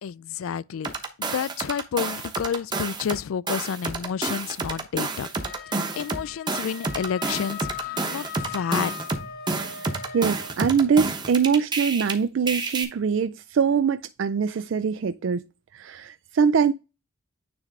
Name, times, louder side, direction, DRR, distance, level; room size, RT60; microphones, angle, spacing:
voice 1, 0.0-0.9 1.2-5.3 6.0-8.9, left 7 dB, 80° left, 0.3 m, -30 dB
sound 1, 0.8-3.2 3.5-12.1 12.5-12.8, right 3 dB, 20° right, 1.0 m, -29 dB
Wind instrument woodwind instrument, 5.4-10.6, left 9 dB, 45° left, 0.7 m, -39 dB
voice 2, 10.1-15.5 15.7-16.7, right 6 dB, 65° right, 0.4 m, -23 dB
9.6 x 3.3 x 3.7 m
head